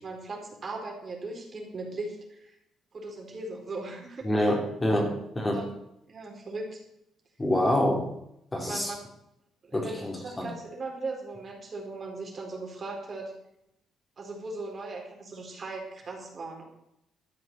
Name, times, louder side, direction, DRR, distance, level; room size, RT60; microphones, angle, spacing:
voice 1, 0.0-2.6 2.9-4.5 4.9-5.1 5.5-5.7 6.1-6.8 8.6-9.1 9.6-13.3 14.2-16.6, right 2 dB, 40° right, 1 dB, 4.2 m, -38 dB
voice 2, 4.2-5.1 5.4-5.6 7.4-8.1 8.5-8.9 9.7-10.5, left 1 dB, 20° left, 0 dB, 3.8 m, -26 dB
13.0 x 7.9 x 7.6 m, 0.80 s
cardioid pair, 100°, 0 cm